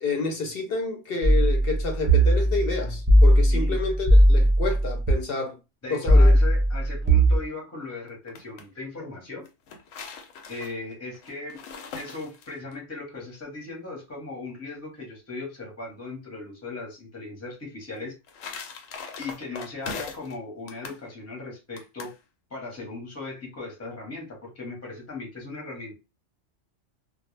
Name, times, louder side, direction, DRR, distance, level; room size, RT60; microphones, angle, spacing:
voice 1, 0.0-5.6 5.9-6.3, left 3 dB, 60° left, 0.7 m, -29 dB
sound 1, 1.2-5.1 6.1-7.4, right 1 dB, 30° right, 0.6 m, -18 dB
voice 2, 3.5-3.8 5.8-9.5 10.5-11.6 11.9-18.2 19.2-22.1 22.5-25.9, left 3 dB, 15° left, 0.7 m, -38 dB
sound 2, 8.1-8.7 9.4-12.7 17.9-20.4 20.7-21.0 21.8-22.2, left 5 dB, 90° left, 0.9 m, -40 dB
2.2 x 2.1 x 3.1 m
omnidirectional pair, 1.3 m